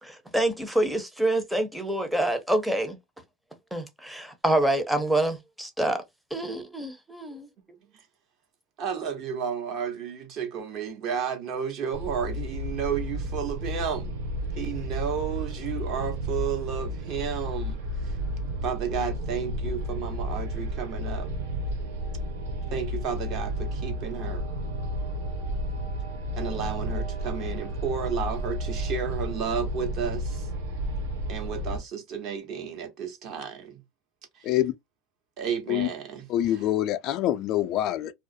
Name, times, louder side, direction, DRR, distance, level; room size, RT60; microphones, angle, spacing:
voice 1, 0.0-3.0 3.7-6.0 6.3-7.5, right 1 dB, 5° right, 0.7 m, -26 dB
voice 2, 8.8-14.2 14.6-17.8 18.6-21.3 22.7-24.5 26.4-30.5 31.3-33.8 34.4-34.5 35.4-36.7, right 7 dB, 50° right, 1.0 m, -32 dB
sound 1, 11.9-31.8, equal, 80° right, 0.6 m, -32 dB
voice 3, 36.3-38.1, left 13 dB, 50° left, 0.3 m, -25 dB
2.3 x 2.0 x 2.6 m
supercardioid pair, 110°, 0 cm